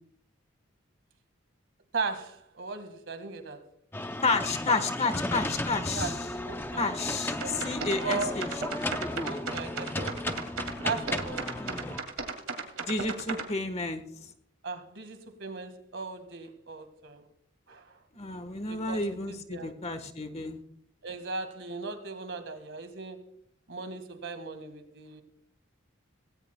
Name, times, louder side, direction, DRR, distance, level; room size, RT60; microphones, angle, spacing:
voice 1, 1.9-3.6 5.9-6.2 6.5-6.8 7.4-8.4 9.2-10.3 10.8-11.5 14.6-17.2 17.7-18.0 18.7-19.8 21.0-23.2 23.7-25.2, right 4 dB, 65° right, 1.8 m, -37 dB
sound 1, 3.9-12.0, left 1 dB, 10° left, 0.5 m, -34 dB
voice 2, 4.2-6.2 6.8-8.5 11.6-12.0 12.8-14.0 18.1-20.6, left 3 dB, 30° left, 1.3 m, -31 dB
sound 2, 7.3-13.4, right 4 dB, 80° right, 2.4 m, -35 dB
18.5 x 16.5 x 2.3 m
head